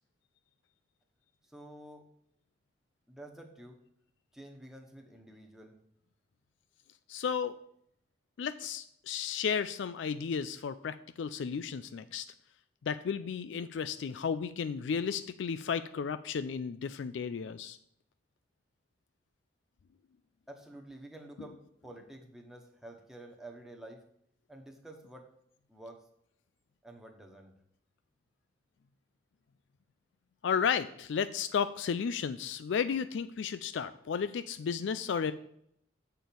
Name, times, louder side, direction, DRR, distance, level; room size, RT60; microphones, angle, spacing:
voice 1, 1.4-2.1 3.1-3.8 4.3-5.8 20.5-24.0 24.5-25.3 25.7-26.1 26.8-27.5, right 1 dB, ahead, 1 dB, 1.0 m, -50 dB
voice 2, 7.1-7.6 8.4-12.3 12.8-17.8 30.4-35.3, left 6 dB, 75° left, 12 dB, 0.4 m, -33 dB
7.7 x 4.5 x 6.9 m, 0.70 s
head